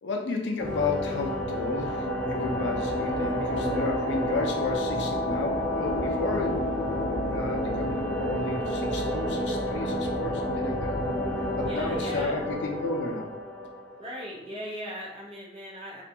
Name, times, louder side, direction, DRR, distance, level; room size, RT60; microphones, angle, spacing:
voice 1, 0.0-6.6 7.3-11.0 11.6-13.3, left 3 dB, 65° left, 2 dB, 0.4 m, -32 dB
sound 1, 0.6-14.2, equal, 10° left, 0.6 m, -29 dB
voice 2, 11.6-12.4 14.0-16.0, equal, 30° right, -3 dB, 0.6 m, -38 dB
2.4 x 2.2 x 2.7 m, 0.86 s
head